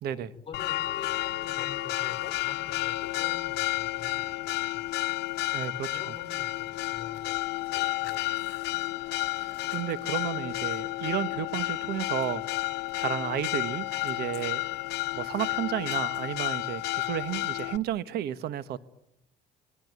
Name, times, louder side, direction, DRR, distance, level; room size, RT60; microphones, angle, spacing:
voice 1, 0.0-5.1 5.7-7.4 7.7-8.5, left 6 dB, 35° left, 3.6 m, -47 dB
Church bell, 0.5-17.8, left 18 dB, 80° left, 1.0 m, -31 dB
voice 2, 5.5-6.0 9.3-12.4 13.0-14.6 15.1-18.8, right 11 dB, 70° right, 1.3 m, -32 dB
27.5 x 21.5 x 9.5 m
cardioid pair, 110°, 17 cm